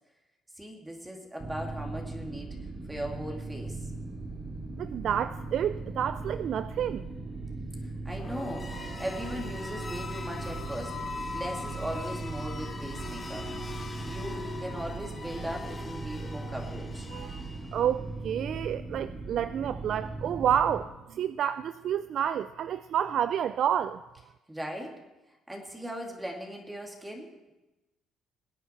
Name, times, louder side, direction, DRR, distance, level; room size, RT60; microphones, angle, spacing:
voice 1, 0.6-2.6 2.9-3.9 7.8-11.0 11.3-13.5 14.1-17.1 24.5-25.0 25.5-27.5, equal, 10° right, 1 dB, 2.7 m, -39 dB
sound 1, 1.4-20.9, right 3 dB, 30° right, 2.3 m, -39 dB
voice 2, 4.8-7.0 17.1-17.4 17.7-24.0, right 9 dB, 65° right, 13 dB, 0.4 m, -29 dB
sound 2, 8.1-18.0, left 3 dB, 30° left, 2.7 m, -41 dB
21.5 x 8.3 x 4.6 m, 1.0 s
supercardioid pair, 75°, 0 cm